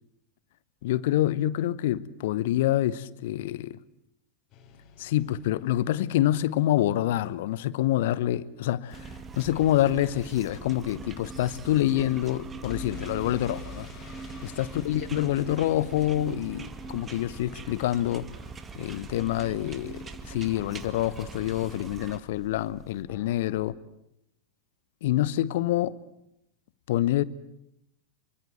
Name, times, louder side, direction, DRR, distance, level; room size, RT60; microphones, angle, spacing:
voice 1, 0.8-3.8 5.0-13.9 14.4-18.3 18.7-23.8 25.0-26.0 26.9-27.2, left 13 dB, 55° left, 0.9 m, -27 dB
sound 1, 4.5-6.5 12.6-18.4, left 5 dB, 35° left, 5.4 m, -47 dB
sound 2, 8.9-22.2, right 4 dB, 20° right, 2.1 m, -42 dB
sound 3, 15.1-23.6, equal, 5° left, 3.1 m, -53 dB
27.0 x 24.5 x 8.0 m
figure-of-eight pair, 90°, 0 cm